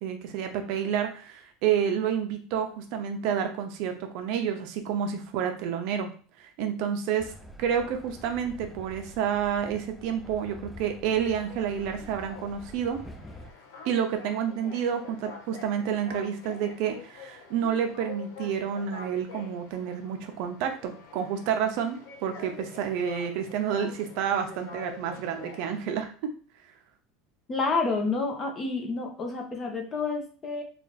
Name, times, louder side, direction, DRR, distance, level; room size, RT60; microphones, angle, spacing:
voice 1, 0.0-6.1 6.4-7.3 7.6-13.0 13.8-26.1, right 8 dB, 60° right, 5 dB, 0.6 m, -29 dB
Train, 7.2-13.5, equal, ahead, 0.4 m, -47 dB
sound 1, 11.3-25.9, left 4 dB, 90° left, 0.9 m, -46 dB
voice 2, 27.5-30.6, left 3 dB, 25° left, 2 dB, 0.8 m, -29 dB
3.3 x 2.4 x 4.0 m, 0.41 s
supercardioid pair, 150°, 0 cm